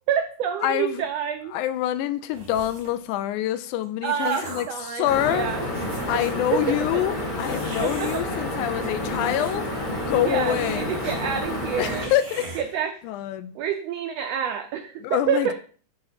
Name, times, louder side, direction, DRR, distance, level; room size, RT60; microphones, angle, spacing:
voice 1, 0.1-1.6 4.0-5.7 6.1-6.2 6.5-6.8 7.8-8.3 10.2-12.1 12.6-13.0 13.5-15.5, right 8 dB, 85° right, 1.4 m, -27 dB
voice 2, 0.6-1.0 1.5-5.5 6.1-9.7 10.0-10.9 11.8-12.5 13.0-13.5 15.0-15.5, left 12 dB, 80° left, 2.0 m, -26 dB
sound 1, 2.3-3.0 3.7-4.8 5.4-5.5 5.7-6.5 7.4-8.2 8.9-9.8 10.1-10.2 10.5-11.2 11.5-11.6 11.9-12.6, right 3 dB, 60° right, 4.1 m, -40 dB
sound 2, 5.0-12.1, left 1 dB, 30° left, 0.8 m, -29 dB
11.0 x 4.0 x 4.1 m
omnidirectional pair, 3.6 m